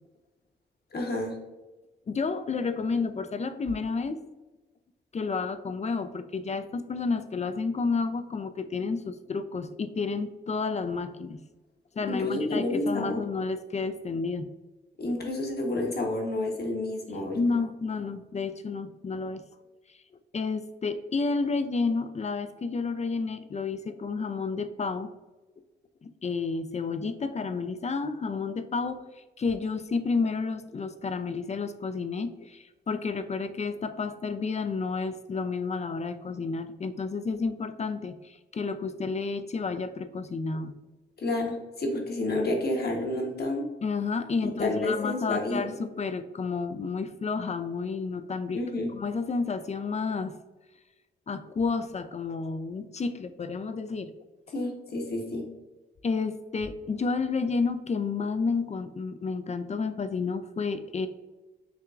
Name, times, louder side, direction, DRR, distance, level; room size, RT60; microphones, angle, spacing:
voice 1, 0.9-1.3 12.1-13.2 15.0-17.6 41.2-43.6 44.4-45.6 48.5-48.9 54.5-55.4, left 2 dB, 50° left, 1 dB, 1.1 m, -30 dB
voice 2, 2.1-4.2 5.1-11.4 12.0-14.5 17.3-19.4 20.3-25.1 26.0-29.0 29.4-40.7 43.8-48.6 48.9-50.4 51.3-54.1 56.0-61.1, left 4 dB, 35° left, 11 dB, 0.4 m, -30 dB
5.8 x 2.2 x 2.5 m, 1.1 s
supercardioid pair, 45°, 21 cm